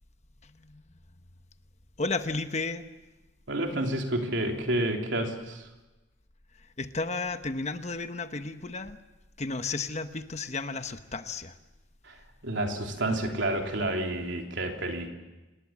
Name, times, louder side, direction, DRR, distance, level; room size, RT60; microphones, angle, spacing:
voice 1, 2.0-2.8 6.8-9.0 9.4-11.5, left 3 dB, 35° left, 9 dB, 1.1 m, -33 dB
voice 2, 3.5-5.7 12.0-12.2 12.4-15.1, right 1 dB, 75° right, 2 dB, 3.4 m, -29 dB
27.5 x 20.5 x 7.5 m, 1.1 s
head